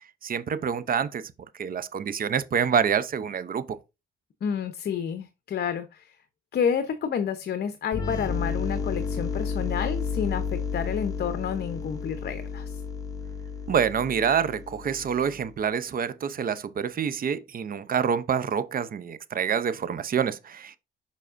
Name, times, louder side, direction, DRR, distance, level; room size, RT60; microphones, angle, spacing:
voice 1, 0.0-3.8 13.7-20.8, right 7 dB, 45° right, 0.7 m, -27 dB
voice 2, 4.4-6.2 6.5-12.8, left 7 dB, 55° left, 0.8 m, -30 dB
sound 1, 7.9-15.5, left 5 dB, 20° left, 1.7 m, -32 dB
7.2 x 5.5 x 2.5 m
cardioid pair, 90°, 20 cm